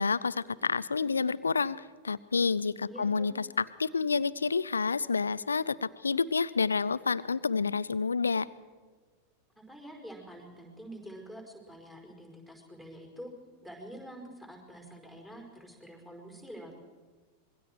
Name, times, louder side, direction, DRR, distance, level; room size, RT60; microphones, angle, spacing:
voice 1, 0.0-1.8 2.0-8.5, left 5 dB, 75° left, 18 dB, 0.5 m, -29 dB
voice 2, 2.8-3.3 9.7-13.3 13.6-16.7, right 1 dB, 5° right, 1 dB, 5.2 m, -47 dB
26.0 x 22.0 x 4.6 m, 1.4 s
figure-of-eight pair, 90°, 0 cm